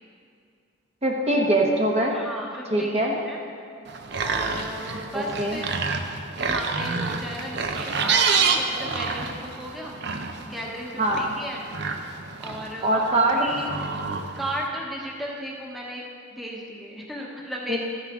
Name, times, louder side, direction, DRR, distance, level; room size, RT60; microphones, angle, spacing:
voice 1, 1.0-2.1 2.7-3.1 5.1-5.6 11.0-11.2 12.8-13.5 17.7-17.8, right 1 dB, 35° right, 0 dB, 1.1 m, -22 dB
voice 2, 2.1-3.4 4.2-5.8 6.3-10.0 10.5-11.6 12.4-13.1 13.3-13.8 14.4-16.0 16.4-17.8, equal, ahead, -3 dB, 1.0 m, -35 dB
sound 1, 3.9-14.7, right 5 dB, 60° right, 0.7 m, -28 dB
13.0 x 9.6 x 3.6 m, 2.3 s
head